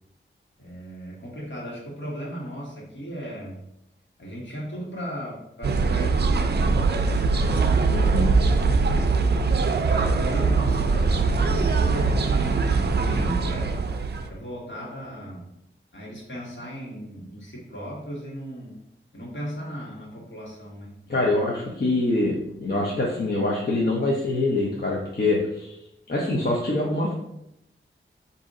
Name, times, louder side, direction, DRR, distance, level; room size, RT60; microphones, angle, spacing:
voice 1, 0.6-3.6 4.2-8.0 8.8-9.4 9.8-13.8 14.3-15.5 15.9-18.8 19.1-21.6, equal, 65° left, -4 dB, 1.6 m, -36 dB
sound 1, 5.6-14.3, right 4 dB, 50° right, 0.4 m, -22 dB
voice 2, 7.9-8.4 21.1-25.8 26.1-27.1, left 2 dB, 50° left, -3 dB, 0.7 m, -24 dB
5.1 x 2.7 x 3.7 m, 0.83 s
wide cardioid pair, 95°, 21 cm